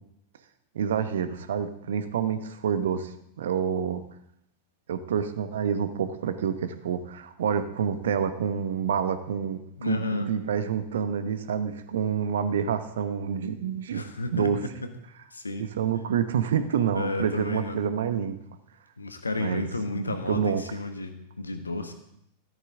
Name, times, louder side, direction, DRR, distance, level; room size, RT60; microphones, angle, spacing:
voice 1, 0.7-4.0 4.9-14.0 14.3-14.6 15.6-18.4 19.4-19.7 19.9-20.6, right 7 dB, 60° right, 11 dB, 1.0 m, -28 dB
voice 2, 9.8-10.3 13.9-14.7 15.3-15.6 16.9-17.8 19.0-21.9, left 3 dB, 80° left, 7 dB, 1.3 m, -32 dB
14.0 x 12.5 x 3.7 m, 0.77 s
figure-of-eight pair, 90°, 0 cm